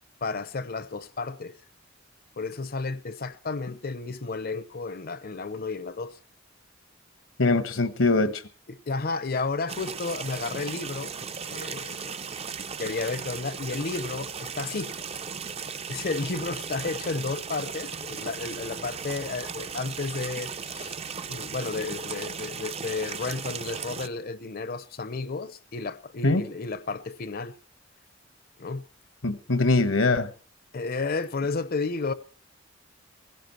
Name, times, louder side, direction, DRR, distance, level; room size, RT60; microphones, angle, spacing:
voice 1, 0.2-1.6 2.4-6.2 8.7-11.1 11.5-12.2 12.8-14.9 15.9-20.9 21.3-27.6 28.6-28.9 30.7-32.1, left 3 dB, 50° left, 0.8 m, -32 dB
voice 2, 7.4-8.4 26.2-26.4 29.2-30.3, left 2 dB, 75° left, 1.2 m, -22 dB
sound 1, 9.7-24.1, right 6 dB, 30° right, 0.6 m, -36 dB
17.0 x 16.0 x 4.4 m
head